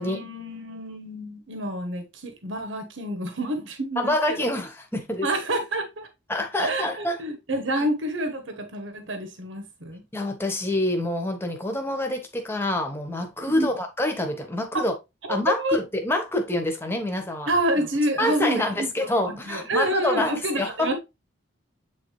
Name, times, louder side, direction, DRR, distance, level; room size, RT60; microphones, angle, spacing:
voice 1, 0.0-4.5 5.2-6.1 6.6-10.0 13.5-13.7 15.3-15.8 17.5-19.1 19.5-20.9, right 1 dB, 70° right, 1.3 m, -28 dB
voice 2, 4.0-5.3 6.3-7.2 7.8-7.9 10.1-14.9 15.3-17.5 18.2-20.9, left 1 dB, 10° left, 1.4 m, -26 dB
8.6 x 4.1 x 3.2 m
head